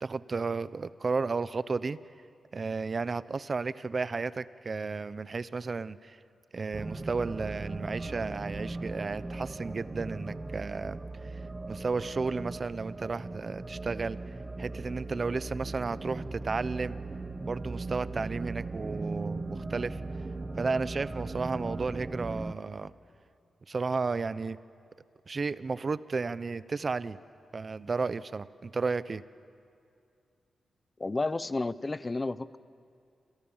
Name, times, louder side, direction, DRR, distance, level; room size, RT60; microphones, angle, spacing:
voice 1, 0.0-2.0 2.5-6.2 6.5-11.0 11.7-14.2 14.6-17.0 17.4-20.0 20.6-22.9 23.7-24.6 25.3-27.2 27.5-29.2, right 4 dB, 40° right, 16 dB, 0.7 m, -33 dB
sound 1, 6.7-22.5, right 3 dB, 25° right, 1.2 m, -38 dB
voice 2, 31.0-32.6, left 3 dB, 25° left, 16 dB, 0.7 m, -31 dB
28.5 x 27.5 x 7.3 m, 2.4 s
cardioid pair, 95°, 0 cm